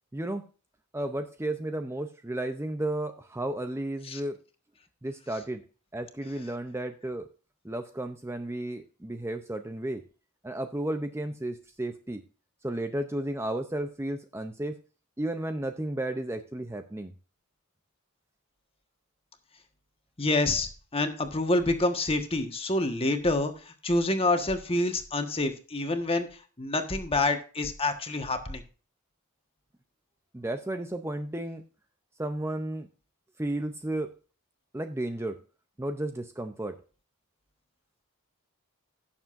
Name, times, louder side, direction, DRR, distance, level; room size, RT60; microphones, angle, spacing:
voice 1, 0.1-0.5 0.9-4.4 5.0-5.6 5.9-7.3 7.6-10.0 10.4-12.2 12.6-14.8 15.2-17.1 30.3-31.6 32.2-32.9 33.4-34.1 34.7-35.4 35.8-36.8, right 1 dB, 10° right, 7 dB, 0.6 m, -33 dB
voice 2, 20.2-28.6, left 2 dB, 25° left, 7 dB, 1.4 m, -27 dB
17.0 x 7.1 x 2.6 m, 0.36 s
head